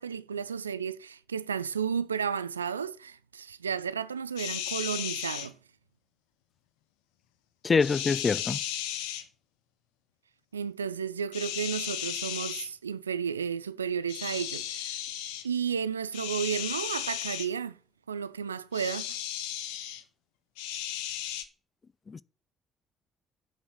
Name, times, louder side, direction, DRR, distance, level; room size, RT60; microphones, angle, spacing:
voice 1, 0.0-5.5 10.5-15.0 15.4-17.8 18.1-19.1, right 7 dB, 85° right, 0.3 m, -32 dB
sound 1, 4.4-5.5 7.8-9.2 11.3-12.7 14.1-15.4 16.1-17.5 18.7-20.0 20.6-21.4, left 11 dB, 70° left, 0.8 m, -35 dB
voice 2, 7.6-8.6 22.1-22.2, left 5 dB, 35° left, 0.5 m, -25 dB
7.8 x 6.2 x 6.1 m
figure-of-eight pair, 45°, 0 cm